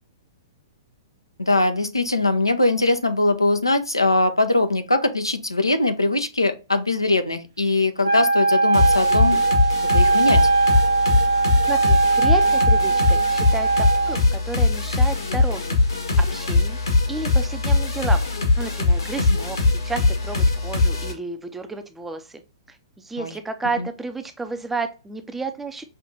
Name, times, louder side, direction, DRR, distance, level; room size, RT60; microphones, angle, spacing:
voice 1, 1.4-9.4 9.8-10.4 19.2-19.4 23.2-23.3 23.8-23.9, left 2 dB, 85° left, 8 dB, 0.5 m, -21 dB
Wind instrument woodwind instrument, 8.0-14.2, right 3 dB, 75° right, 0.9 m, -20 dB
sound 1, 8.7-21.1, left 3 dB, 70° left, 1.3 m, -21 dB
voice 2, 11.7-15.8 16.2-16.8 17.1-18.2 18.6-22.4 22.7-25.8, right 3 dB, 10° right, 7 dB, 0.5 m, -31 dB
5.6 x 2.5 x 2.6 m, 0.31 s
figure-of-eight pair, 110°, 2 cm